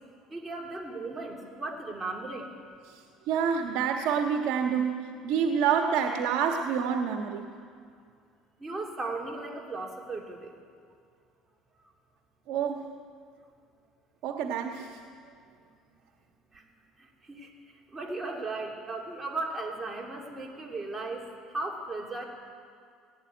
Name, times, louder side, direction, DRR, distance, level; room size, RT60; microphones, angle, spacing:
voice 1, 0.3-2.5 8.6-10.5 16.5-16.6 17.0-22.2, right 3 dB, 15° right, -1 dB, 2.9 m, -36 dB
voice 2, 2.9-7.4 12.5-12.9 14.2-15.0, right 7 dB, 70° right, 3 dB, 1.5 m, -28 dB
19.0 x 17.0 x 9.4 m, 2.3 s
cardioid pair, 125°, 0 cm